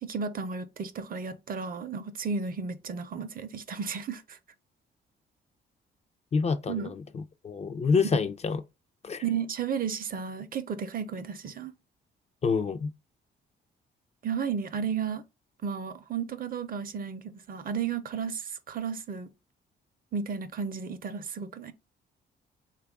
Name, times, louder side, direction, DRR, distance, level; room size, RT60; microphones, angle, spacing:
voice 1, 0.0-4.4 6.7-6.9 8.1-8.2 9.2-11.7 14.2-15.2 15.6-19.3 20.1-21.7, right 6 dB, 45° right, 0.5 m, -33 dB
voice 2, 6.3-8.6 9.0-9.2 12.4-12.9, left 5 dB, 35° left, 0.4 m, -27 dB
3.3 x 2.3 x 3.4 m
cardioid pair, 90°, 20 cm